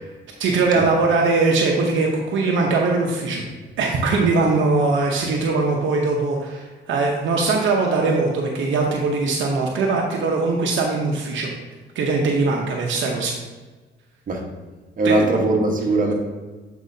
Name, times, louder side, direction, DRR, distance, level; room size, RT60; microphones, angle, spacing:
voice 1, 0.4-3.4 3.8-11.5 11.9-13.3 15.0-15.3, right 3 dB, 75° right, 0 dB, 0.9 m, -21 dB
voice 2, 15.0-16.1, right 2 dB, 45° right, 0 dB, 1.3 m, -20 dB
8.1 x 4.6 x 2.7 m, 1.3 s
cardioid pair, 90°, 20 cm